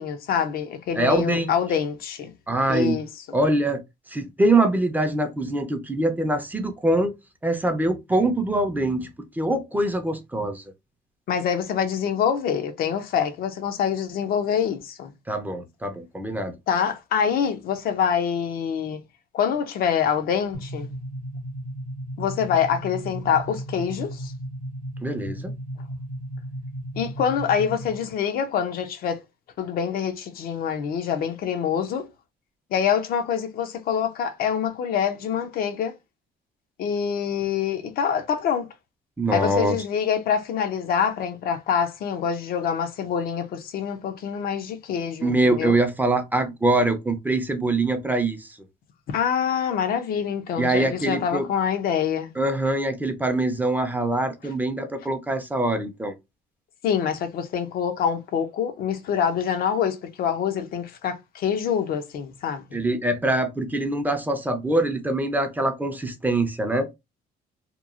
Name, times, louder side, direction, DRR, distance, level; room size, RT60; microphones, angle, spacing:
voice 1, 0.0-2.3 2.7-3.1 11.3-15.1 16.7-19.0 19.3-20.9 22.2-24.3 27.0-29.2 29.6-32.1 32.7-35.9 36.8-38.7 39.3-45.8 49.1-52.3 56.8-62.8, left 7 dB, 60° left, 0.6 m, -25 dB
voice 2, 1.0-1.5 2.5-3.0 3.3-3.8 4.1-7.1 7.4-9.1 9.4-10.6 15.3-16.5 25.0-25.5 39.2-39.8 45.2-48.5 50.6-51.5 52.4-56.1 62.7-66.9, right 2 dB, 10° right, 0.5 m, -23 dB
sound 1, 20.5-28.1, right 1 dB, 50° right, 0.7 m, -35 dB
2.9 x 2.3 x 2.4 m
cardioid pair, 110°, 17 cm